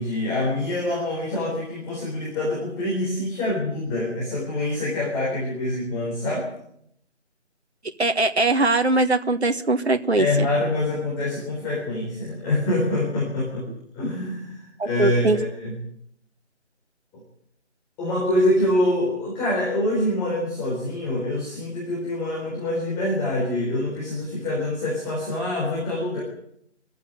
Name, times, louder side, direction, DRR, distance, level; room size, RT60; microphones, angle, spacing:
voice 1, 0.0-6.5 10.1-15.7 18.0-26.2, left 1 dB, 10° left, -6 dB, 4.0 m, -25 dB
voice 2, 8.0-10.3 14.8-15.4, right 2 dB, 65° right, 8 dB, 1.5 m, -21 dB
24.5 x 14.5 x 9.3 m, 0.72 s
figure-of-eight pair, 160°, 35 cm